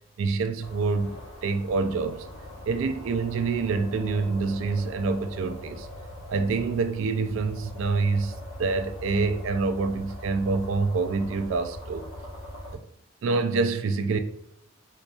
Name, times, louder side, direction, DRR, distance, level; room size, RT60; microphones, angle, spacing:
voice 1, 0.2-1.1 1.4-2.3 2.7-5.9 6.3-8.3 8.6-12.1 12.7-12.8 13.2-14.2, right 4 dB, 70° right, 0.3 m, -26 dB
sound 1, 0.6-12.8, left 1 dB, 65° left, 1.1 m, -41 dB
3.7 x 2.8 x 2.3 m
head